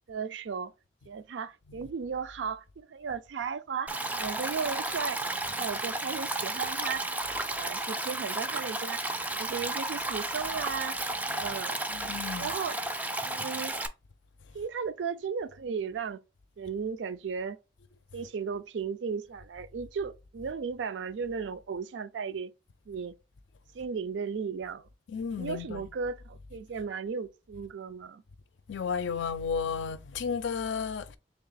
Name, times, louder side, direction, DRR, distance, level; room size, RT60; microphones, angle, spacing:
voice 1, 0.1-0.7 1.1-7.1 7.5-9.0 9.4-11.0 11.3-11.8 12.4-12.8 13.3-13.7 14.5-16.2 16.6-17.6 18.1-22.5 22.9-23.1 23.7-24.9 25.4-28.2, right 6 dB, 80° right, 0.4 m, -35 dB
Stream, 3.9-13.9, right 2 dB, 10° right, 0.3 m, -33 dB
voice 2, 11.9-12.5 25.1-25.9 28.7-31.2, left 6 dB, 85° left, 0.4 m, -33 dB
3.5 x 2.8 x 4.0 m
head